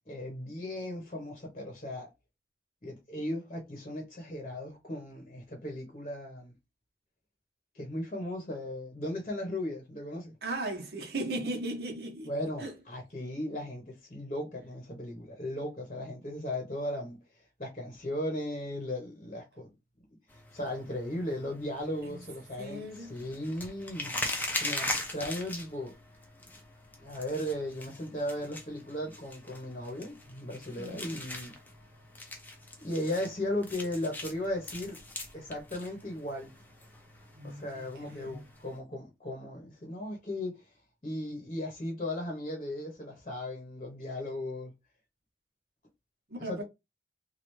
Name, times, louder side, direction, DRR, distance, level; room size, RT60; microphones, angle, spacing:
voice 1, 0.1-2.1 2.8-6.5 7.7-10.3 12.3-17.2 17.6-19.7 20.5-24.1 24.5-25.9 27.0-31.5 32.8-35.0 35.3-36.5 37.4-40.6 41.0-44.7 46.4-46.6, left 1 dB, 35° left, 0.9 m, -36 dB
voice 2, 10.4-12.3 12.6-12.7 22.0-22.2 22.6-23.2 30.8-31.2 37.3-38.5 46.3-46.6, right 2 dB, 60° right, 1.0 m, -37 dB
sound 1, 20.3-38.8, left 1 dB, 10° left, 0.6 m, -41 dB
3.2 x 2.4 x 3.0 m
head